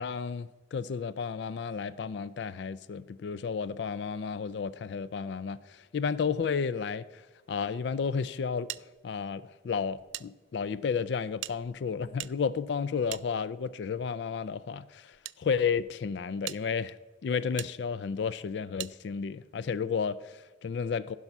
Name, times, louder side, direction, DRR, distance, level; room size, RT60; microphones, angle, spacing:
voice 1, 0.0-8.7 9.0-17.0 17.2-21.2, left 6 dB, 70° left, 0.4 m, -32 dB
sound 1, 8.7-10.3 10.5-10.6 11.4-13.8 14.6-15.4 15.9-16.0 16.4-16.6 17.6-17.7 18.8-18.9, right 16 dB, 85° right, 0.3 m, -42 dB
15.0 x 5.6 x 5.9 m
head